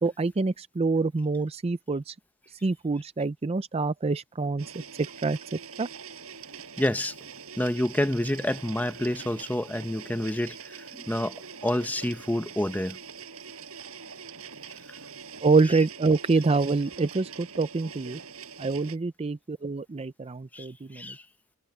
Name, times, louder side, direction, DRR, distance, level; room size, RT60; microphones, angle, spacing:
voice 1, 0.0-2.1 2.6-4.7 5.0-5.4 5.8-5.9 15.4-18.2 18.6-21.2, right 3 dB, 25° right, 0.4 m, -26 dB
Printer, 4.6-19.0, right 6 dB, 70° right, 5.8 m, -44 dB
voice 2, 6.8-7.1 7.6-11.4 11.6-13.0 20.5-20.7 20.9-21.2, left 1 dB, 5° left, 0.8 m, -28 dB
head